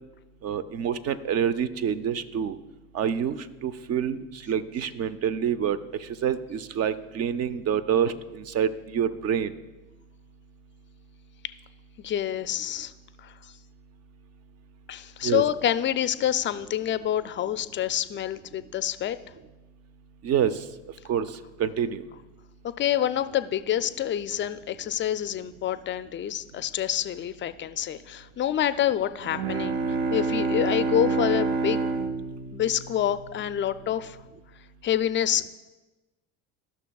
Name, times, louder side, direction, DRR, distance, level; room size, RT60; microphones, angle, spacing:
voice 1, 0.4-2.6 2.9-3.4 3.6-9.5 15.2-15.4 20.2-20.6 21.1-21.3 21.6-22.0, right 8 dB, 40° right, 14 dB, 0.6 m, -27 dB
voice 2, 12.0-12.9 13.2-13.3 14.9-19.2 22.8-29.8 30.1-31.8 32.5-34.2 34.8-35.5, left 11 dB, 30° left, 12 dB, 0.4 m, -27 dB
Bowed string instrument, 29.2-33.8, right 4 dB, 55° right, 0.9 m, -28 dB
14.5 x 6.1 x 2.3 m, 1.1 s
hypercardioid pair, 75°, 39 cm